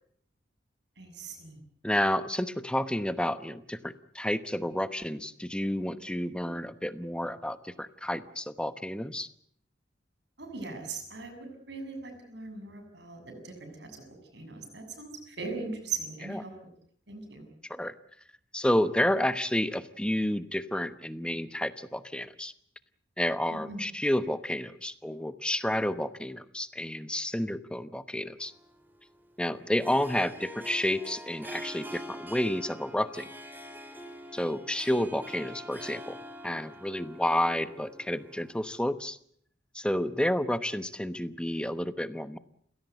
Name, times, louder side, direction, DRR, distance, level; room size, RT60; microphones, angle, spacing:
voice 1, 1.0-1.6 10.4-16.5 17.1-17.5 23.5-23.8, right 4 dB, 60° right, 6 dB, 7.0 m, -40 dB
voice 2, 1.8-9.3 16.2-16.4 17.7-17.9 18.5-22.5 23.2-28.5 29.4-33.3 34.3-36.2 36.4-39.2 39.7-42.4, left 1 dB, 5° left, 12 dB, 1.0 m, -30 dB
Harp, 28.4-38.8, equal, 10° right, 2.9 m, -45 dB
29.5 x 17.0 x 8.0 m, 0.63 s
head